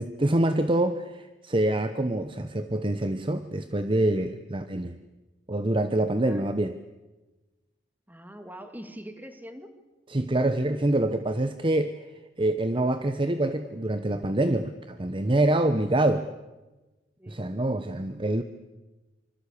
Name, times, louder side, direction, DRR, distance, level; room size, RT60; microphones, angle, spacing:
voice 1, 0.0-5.0 5.5-6.8 10.1-12.0 12.4-16.3 17.3-18.4, right 1 dB, 30° right, 10 dB, 1.0 m, -26 dB
voice 2, 8.1-9.7 17.2-17.5, equal, 10° right, 8 dB, 2.5 m, -43 dB
26.0 x 25.5 x 8.5 m, 1.1 s
head